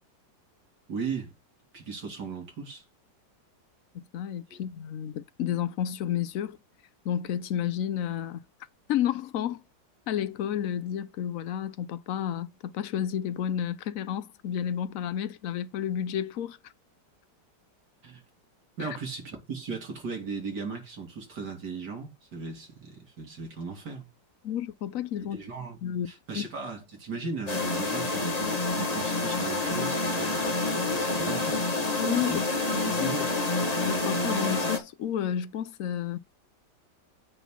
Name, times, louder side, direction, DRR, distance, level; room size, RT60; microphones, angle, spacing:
voice 1, 0.9-1.3 1.7-2.8 4.5-4.6 18.0-18.2 18.8-24.1 25.2-25.8 26.1-31.6 32.2-32.4 32.9-33.3, right 4 dB, 65° right, 3.5 m, -37 dB
voice 2, 3.9-6.6 7.0-8.4 8.9-9.6 10.1-16.6 18.8-18.9 24.4-25.4 25.8-26.1 26.3-26.5 32.0-32.4 32.7-33.1 33.8-36.2, left 10 dB, 60° left, 0.9 m, -31 dB
sound 1, 27.5-34.8, left 2 dB, 25° left, 1.5 m, -28 dB
9.1 x 4.2 x 5.8 m
omnidirectional pair, 1.9 m